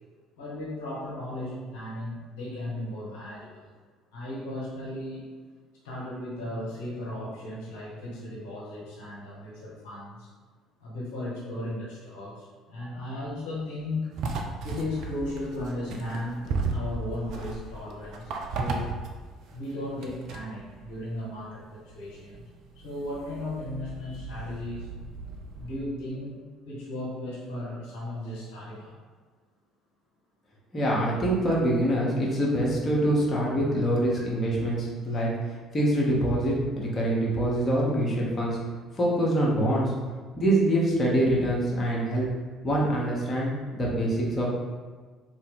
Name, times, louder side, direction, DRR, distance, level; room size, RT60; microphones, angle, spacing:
voice 1, 0.4-3.7 4.1-5.3 5.8-10.3 10.8-14.1 14.6-18.9 19.5-22.4 22.8-24.9 25.6-26.4 26.7-29.0 35.1-35.2, left 1 dB, 70° left, -6 dB, 0.8 m, -36 dB
sound 1, 14.1-25.8, right 3 dB, 60° right, 0.4 m, -36 dB
voice 2, 30.7-35.3 35.7-38.6 39.0-39.9 40.4-42.2 42.6-44.5, right 1 dB, 30° left, -4 dB, 1.1 m, -25 dB
3.3 x 2.5 x 3.6 m, 1.5 s
figure-of-eight pair, 55°, 0 cm